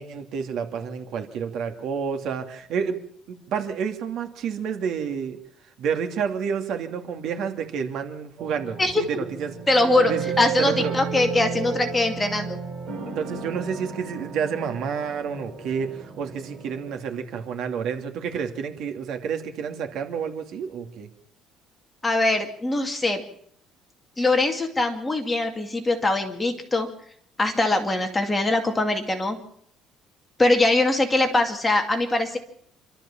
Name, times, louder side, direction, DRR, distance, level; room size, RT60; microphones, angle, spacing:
voice 1, 0.0-3.0 3.3-5.4 5.8-9.6 10.0-10.9 13.0-21.1, right 7 dB, 60° right, 5 dB, 2.6 m, -29 dB
sound 1, 8.4-16.9, right 6 dB, 40° right, 7.5 m, -33 dB
voice 2, 8.8-9.2 9.7-12.6 22.0-23.2 24.2-26.9 27.4-29.4 30.4-32.4, left 2 dB, 10° left, 4 dB, 2.3 m, -22 dB
27.0 x 13.0 x 7.3 m, 0.67 s
cardioid pair, 160°, 0 cm